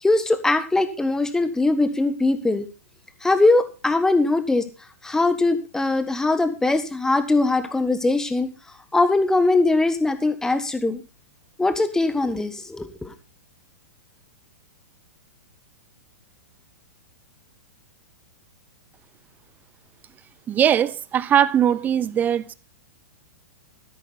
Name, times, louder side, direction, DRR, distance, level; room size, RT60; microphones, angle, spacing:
voice 1, 0.0-2.7 3.2-4.7 5.0-8.5 8.9-11.0 11.6-13.1, left 2 dB, 5° left, 1.5 m, -21 dB
voice 2, 20.5-22.5, right 9 dB, 20° right, 0.7 m, -20 dB
12.5 x 11.0 x 4.1 m
figure-of-eight pair, 105°, 8 cm